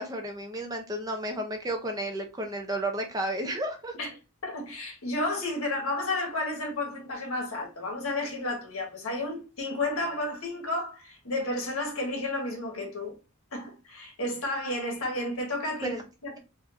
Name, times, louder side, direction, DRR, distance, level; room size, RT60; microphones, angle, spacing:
voice 1, 0.0-3.9 15.8-16.0, right 1 dB, 15° right, 0.5 m, -32 dB
voice 2, 4.4-13.1 13.5-16.4, left 2 dB, 80° left, 1.4 m, -32 dB
4.3 x 2.6 x 2.5 m
head